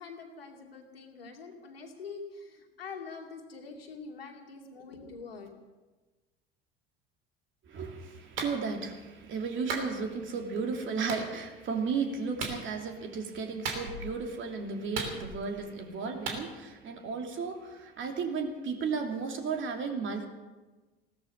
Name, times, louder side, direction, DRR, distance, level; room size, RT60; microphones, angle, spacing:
voice 1, 0.0-5.5, left 4 dB, 80° left, 2 dB, 2.4 m, -45 dB
voice 2, 7.7-20.3, right 5 dB, 40° right, 3 dB, 2.8 m, -34 dB
Clapping, 8.4-8.6 9.7-9.9 11.1-11.2 12.4-12.6 13.6-14.1 14.9-15.5 16.3-16.4, right 4 dB, 75° right, 3.0 m, -35 dB
16.5 x 13.0 x 6.6 m, 1.2 s
figure-of-eight pair, 70°, 29 cm